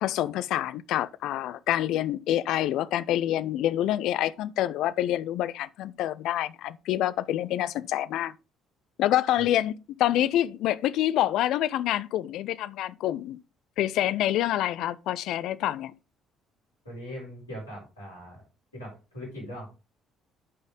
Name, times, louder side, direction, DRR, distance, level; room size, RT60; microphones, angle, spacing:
voice 1, 0.0-8.3 9.0-13.4 13.8-15.9, left 13 dB, 60° left, 0.4 m, -27 dB
voice 2, 16.8-18.4 18.7-19.7, equal, 85° left, 5.5 m, -40 dB
9.3 x 5.4 x 3.8 m
figure-of-eight pair, 50°, 0 cm